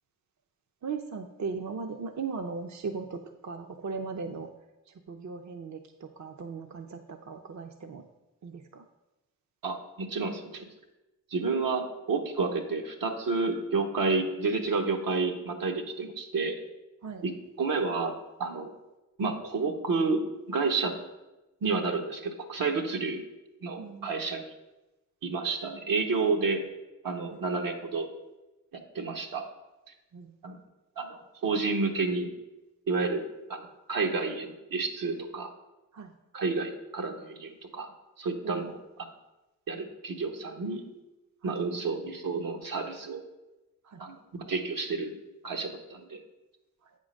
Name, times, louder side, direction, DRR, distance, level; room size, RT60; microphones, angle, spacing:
voice 1, 0.8-4.5 4.9-8.0 8.4-8.8 17.0-17.2 23.8-24.1 27.3-27.4 30.1-30.3 35.9-36.1 38.4-38.7 41.4-41.6 43.8-44.0 46.8-46.9, right 5 dB, 60° right, 5 dB, 0.6 m, -38 dB
voice 2, 9.6-10.7 11.3-16.6 17.2-17.3 17.6-18.7 19.2-20.2 20.5-21.0 21.6-23.2 23.6-24.4 25.2-26.6 27.0-28.1 28.9-29.4 30.4-30.6 31.0-32.3 32.9-33.2 33.5-35.5 36.3-37.9 38.2-39.1 39.7-40.9 41.4-43.2 44.0-44.1 44.5-45.2 45.4-46.2, right 4 dB, 85° right, 3 dB, 1.0 m, -30 dB
8.2 x 3.7 x 6.3 m, 1.0 s
cardioid pair, 55°, 33 cm